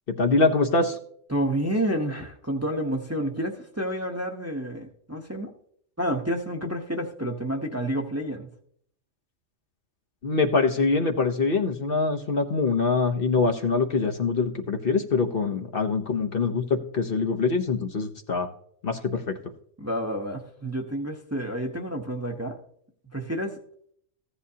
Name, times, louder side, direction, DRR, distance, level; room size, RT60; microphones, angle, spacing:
voice 1, 0.2-1.0 10.2-18.5 18.8-19.4, left 4 dB, 50° left, 5 dB, 1.0 m, -24 dB
voice 2, 1.3-5.5 6.0-8.5 19.8-22.6 23.1-23.5, right 1 dB, 15° right, 2 dB, 0.9 m, -29 dB
15.0 x 10.0 x 2.8 m, 0.65 s
omnidirectional pair, 1.3 m